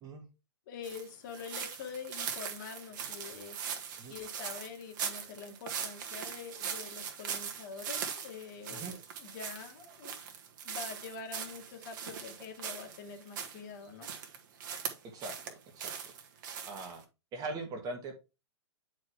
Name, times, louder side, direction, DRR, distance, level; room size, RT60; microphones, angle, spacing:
voice 1, 0.7-3.6 4.1-10.1 10.6-14.1, left 5 dB, 45° left, 3 dB, 2.2 m, -45 dB
sound 1, 0.8-13.6 14.0-15.5 15.8-17.0, right 7 dB, 45° right, 1.5 m, -40 dB
voice 2, 15.1-15.9 16.6-17.0 17.3-18.2, right 3 dB, 25° right, 3 dB, 1.6 m, -41 dB
9.3 x 4.7 x 3.3 m, 0.27 s
figure-of-eight pair, 110°, 15 cm